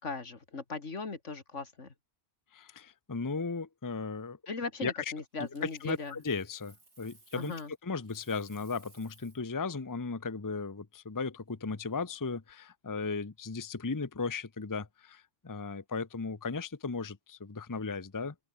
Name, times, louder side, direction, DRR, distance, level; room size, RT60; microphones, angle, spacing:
voice 1, 0.0-1.9 4.5-6.1 7.3-7.7, left 4 dB, 80° left, 2.8 m, -38 dB
voice 2, 2.5-4.4 4.8-4.9 5.4-7.6 7.8-18.3, left 4 dB, 20° left, 0.8 m, -36 dB
Coin (dropping), 5.4-7.8 8.0-9.5 12.3-12.5, right 2 dB, 70° right, 4.9 m, -61 dB
open air
omnidirectional pair, 1.2 m